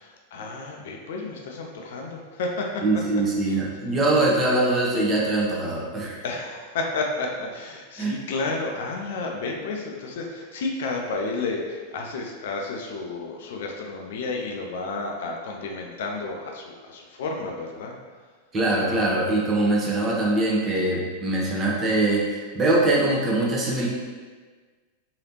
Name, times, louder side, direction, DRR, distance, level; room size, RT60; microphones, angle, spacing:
voice 1, 0.0-3.6 6.2-18.0, left 3 dB, 55° left, 1 dB, 0.4 m, -31 dB
voice 2, 2.8-6.2 8.0-8.1 18.5-23.9, right 2 dB, 20° right, -4 dB, 0.7 m, -23 dB
3.1 x 2.7 x 2.9 m, 1.4 s
figure-of-eight pair, 90°, 0 cm